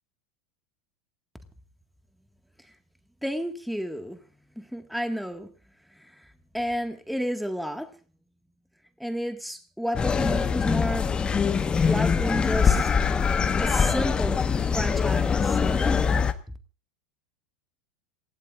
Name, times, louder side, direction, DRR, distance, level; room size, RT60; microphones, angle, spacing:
voice 1, 3.2-4.2 4.6-5.5 6.0-6.3 6.5-7.9 9.0-11.1 11.8-13.0 13.6-14.4 14.7-16.1, equal, ahead, 1.8 m, -31 dB
sound 1, 9.9-16.3, left 6 dB, 25° left, 1.3 m, -23 dB
28.0 x 16.5 x 2.5 m
hypercardioid pair, 85°, 4 cm